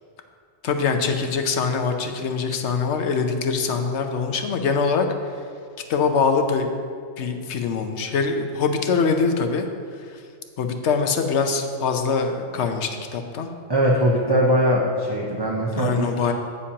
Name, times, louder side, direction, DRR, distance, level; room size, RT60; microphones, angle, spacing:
voice 1, 0.6-5.1 5.9-6.7 7.2-9.7 10.6-13.5 15.7-16.3, left 5 dB, 70° left, 5 dB, 1.0 m, -23 dB
voice 2, 13.7-16.1, equal, 25° right, -4 dB, 0.8 m, -20 dB
9.7 x 8.8 x 2.9 m, 2.2 s
omnidirectional pair, 1.2 m